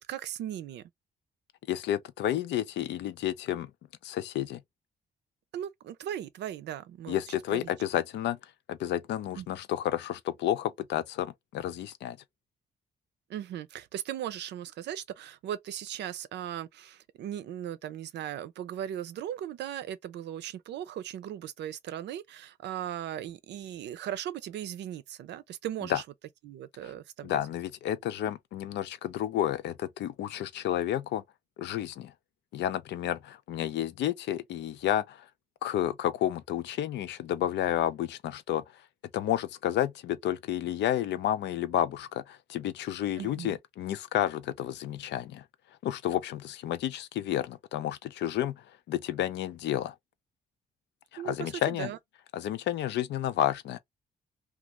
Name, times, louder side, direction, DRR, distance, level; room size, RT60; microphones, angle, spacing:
voice 1, 0.1-0.9 5.5-7.2 7.5-7.7 9.4-9.5 13.3-26.0 26.4-27.4 43.2-43.6 51.2-52.0, right 11 dB, 80° right, 0.5 m, -38 dB
voice 2, 1.7-3.7 4.0-4.6 7.1-8.4 8.7-12.2 25.9-26.0 27.2-31.2 31.6-32.1 32.5-35.2 35.6-38.6 39.1-45.4 45.8-48.6 48.9-49.9 51.1-51.9 52.3-53.8, left 12 dB, 85° left, 0.5 m, -31 dB
2.5 x 2.4 x 3.0 m
cardioid pair, 95°, 18 cm